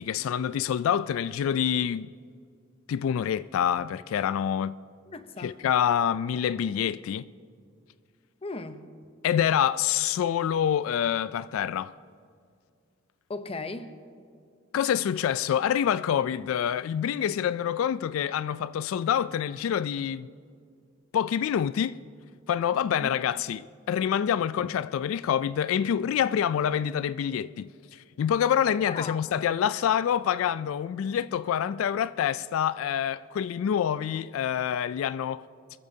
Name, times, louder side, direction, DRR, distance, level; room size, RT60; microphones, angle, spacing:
voice 1, 0.0-2.1 2.9-4.8 5.4-7.3 9.2-11.9 14.7-20.3 21.1-22.0 22.5-27.7 28.2-35.4, left 9 dB, 90° left, 0.3 m, -26 dB
voice 2, 5.1-5.5 8.4-8.8 13.3-13.9 23.0-23.1 28.9-29.2, left 3 dB, 30° left, 0.7 m, -36 dB
25.0 x 14.0 x 2.7 m
head